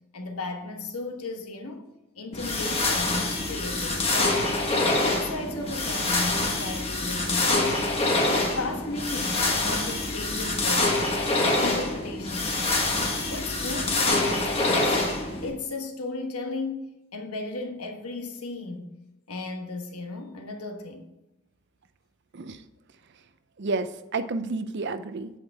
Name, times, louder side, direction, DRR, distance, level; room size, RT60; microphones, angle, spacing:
voice 1, 0.1-1.9 2.1-4.5 5.0-7.9 8.2-11.0 11.3-12.9 13.3-18.9 19.3-21.1, left 2 dB, 80° left, 1.3 m, -35 dB
sound 1, 2.3-15.5, left 2 dB, 25° left, 1.4 m, -25 dB
voice 2, 23.6-25.3, right 3 dB, 50° right, 0.5 m, -30 dB
9.0 x 5.8 x 3.5 m
head